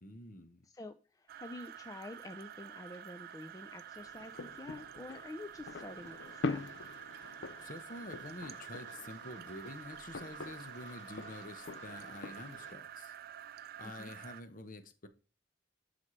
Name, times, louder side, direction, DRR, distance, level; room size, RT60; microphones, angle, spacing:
voice 1, 0.0-0.7 7.6-13.1 13.8-15.1, left 2 dB, 50° left, 1.0 m, -48 dB
voice 2, 0.6-6.7 13.8-14.1, left 2 dB, 20° left, 0.4 m, -48 dB
sound 1, 1.3-14.4, right 10 dB, 55° right, 0.3 m, -49 dB
sound 2, 3.9-12.7, left 3 dB, 75° left, 0.6 m, -44 dB
12.5 x 4.2 x 3.1 m
head